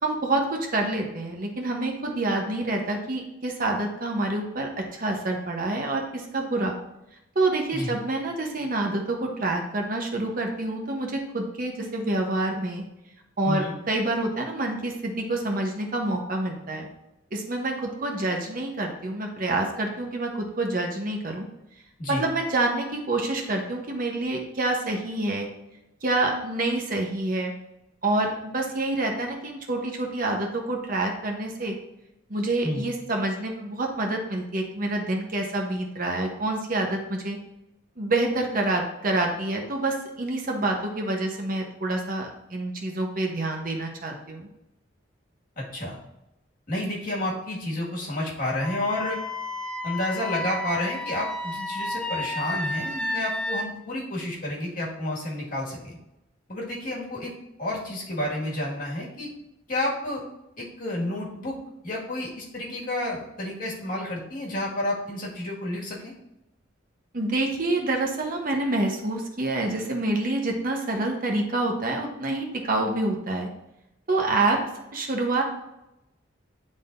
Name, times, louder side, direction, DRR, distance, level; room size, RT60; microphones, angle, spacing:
voice 1, 0.0-6.7 7.3-12.8 13.4-16.9 17.3-21.5 22.1-25.5 26.0-27.5 28.0-31.7 32.3-37.4 38.0-44.5 67.1-73.5 74.1-74.6 74.9-75.4, right 2 dB, 45° right, 1 dB, 0.9 m, -27 dB
voice 2, 45.6-46.0 46.7-49.2 49.8-56.0 56.5-57.3 57.6-59.3 59.7-60.2 60.6-61.6 61.8-66.1, left 1 dB, 45° left, -4 dB, 1.9 m, -30 dB
Wind instrument woodwind instrument, 48.6-53.7, left 1 dB, 5° left, 0.4 m, -31 dB
9.9 x 3.7 x 2.6 m, 0.88 s
head